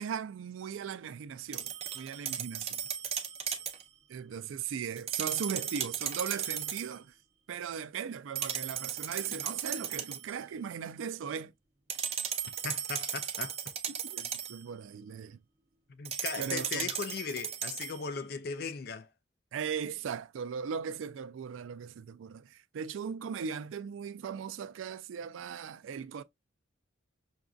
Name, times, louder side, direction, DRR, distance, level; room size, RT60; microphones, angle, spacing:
voice 1, 0.0-2.8 4.1-7.1 7.5-11.5 13.9-15.4 16.4-16.9 19.5-26.2, right 7 dB, 80° right, 0.3 m, -38 dB
sound 1, 1.5-3.8 5.0-6.9 8.3-10.3 11.9-14.6 16.0-18.0, right 8 dB, 30° right, 0.5 m, -36 dB
voice 2, 12.6-13.6 15.9-19.1, left 5 dB, 50° left, 0.4 m, -38 dB
5.9 x 2.5 x 2.3 m
head